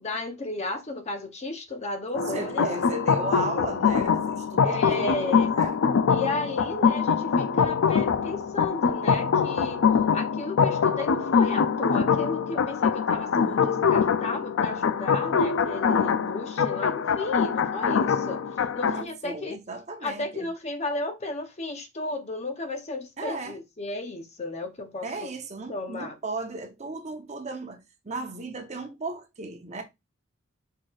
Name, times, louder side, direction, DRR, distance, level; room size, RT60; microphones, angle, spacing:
voice 1, 0.0-2.7 4.6-5.5 6.1-9.8 10.1-18.4 18.7-19.6 20.0-25.3 25.7-26.1, left 2 dB, 35° left, 0.7 m, -34 dB
sound 1, 2.1-19.0, left 6 dB, 75° left, 0.4 m, -24 dB
voice 2, 2.3-5.8 13.4-13.9 18.9-20.5 23.2-23.6 25.0-27.8 28.0-29.8, right 2 dB, 35° right, 0.8 m, -35 dB
4.6 x 4.4 x 2.4 m
head